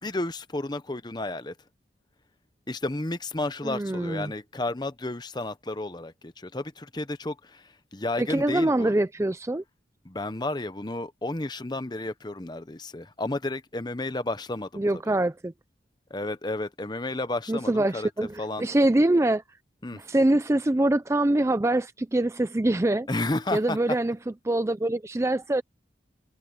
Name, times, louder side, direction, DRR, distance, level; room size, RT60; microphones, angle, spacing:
voice 1, 0.0-1.5 2.7-8.9 10.0-15.1 16.1-18.1 18.4-18.7 19.8-20.0 23.1-23.8, left 2 dB, 25° left, 0.9 m, -32 dB
voice 2, 3.6-4.3 8.2-9.6 14.8-15.5 17.5-19.4 19.9-23.1 23.5-24.2 24.4-25.6, right 1 dB, 15° right, 0.4 m, -24 dB
head